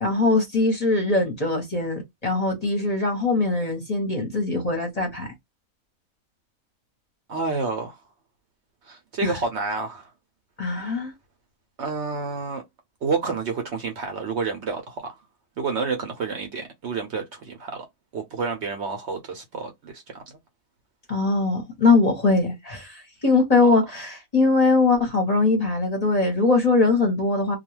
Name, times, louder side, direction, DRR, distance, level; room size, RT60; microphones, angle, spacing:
voice 1, 0.0-5.3 9.2-9.3 10.6-11.1 21.1-27.6, left 3 dB, 35° left, 0.8 m, -21 dB
voice 2, 7.3-8.0 8.8-10.1 10.8-10.9 11.8-12.6 13.0-15.2 15.6-17.9 18.1-20.2 23.6-23.7, right 4 dB, 60° right, 0.8 m, -29 dB
2.3 x 2.3 x 3.1 m
omnidirectional pair, 1.5 m